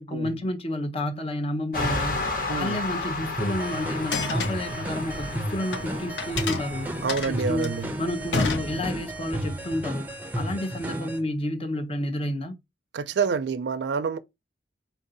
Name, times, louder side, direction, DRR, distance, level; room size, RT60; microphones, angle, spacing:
voice 1, 0.0-6.9 7.4-12.6, left 1 dB, 35° left, 0.6 m, -30 dB
sound 1, 1.7-9.8, left 2 dB, 50° left, 1.0 m, -33 dB
voice 2, 2.5-2.8 7.0-7.9 12.9-14.2, right 5 dB, 70° right, 0.4 m, -27 dB
sound 2, 3.4-11.2, right 1 dB, 10° right, 0.5 m, -33 dB
sound 3, 4.1-5.8 6.2-9.2, left 4 dB, 80° left, 0.7 m, -31 dB
4.5 x 2.7 x 3.8 m
head